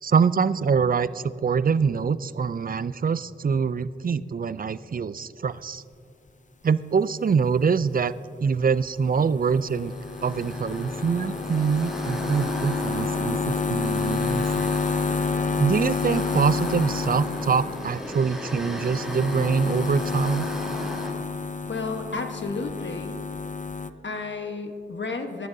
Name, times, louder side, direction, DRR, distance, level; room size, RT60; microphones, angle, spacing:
voice 1, 0.0-5.8 6.6-8.1 8.4-9.9 10.2-14.7 15.6-20.4, right 6 dB, 45° right, 16 dB, 0.4 m, -24 dB
sound 1, 9.0-23.9, left 4 dB, 40° left, 0.6 m, -29 dB
sound 2, 9.8-21.1, equal, 5° right, 2.5 m, -37 dB
voice 2, 21.7-23.2 24.0-25.5, left 3 dB, 70° left, 5 dB, 1.2 m, -32 dB
23.5 x 11.0 x 2.7 m, 2.5 s
wide cardioid pair, 65°, 20 cm